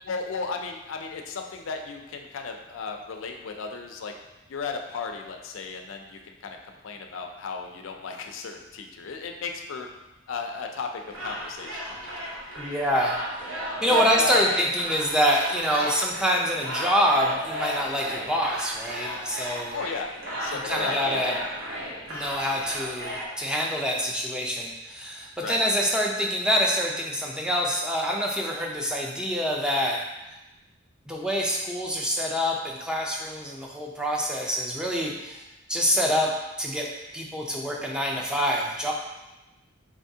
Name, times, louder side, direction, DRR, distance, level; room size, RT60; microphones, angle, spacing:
voice 1, 0.1-4.1 4.5-6.6 6.8-9.9 10.3-11.8 13.9-14.4 15.8-16.0 19.7-20.1 20.4-21.4 25.4-25.6, left 4 dB, 75° left, 4 dB, 0.4 m, -34 dB
sound 1, 11.0-23.3, equal, 75° right, 1.1 m, -34 dB
voice 2, 12.6-13.2 13.8-19.8 20.5-21.4 22.1-30.0 31.1-35.4 35.7-36.3 36.6-36.9 37.1-38.9, equal, 5° right, -2 dB, 0.4 m, -26 dB
3.8 x 3.4 x 2.7 m, 1.0 s
head